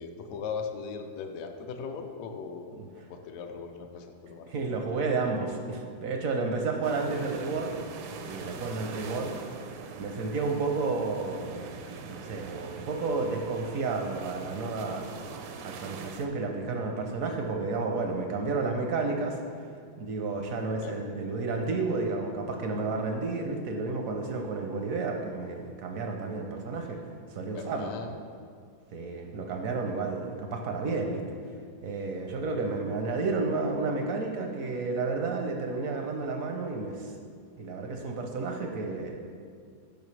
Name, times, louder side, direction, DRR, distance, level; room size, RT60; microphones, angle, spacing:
voice 1, 0.0-2.7 2.9-4.5 7.1-7.3 20.8-21.0 27.5-28.1, left 5 dB, 70° left, 5 dB, 0.8 m, -38 dB
voice 2, 4.5-7.8 8.2-9.3 10.0-11.8 12.1-15.1 15.6-19.4 20.0-27.0 27.3-27.9 28.9-31.2 31.8-37.1 37.6-39.2, right 3 dB, 70° right, 3 dB, 0.8 m, -31 dB
sound 1, 6.8-16.3, right 5 dB, 85° right, 1.4 m, -42 dB
12.0 x 5.2 x 3.2 m, 2.1 s
omnidirectional pair, 2.1 m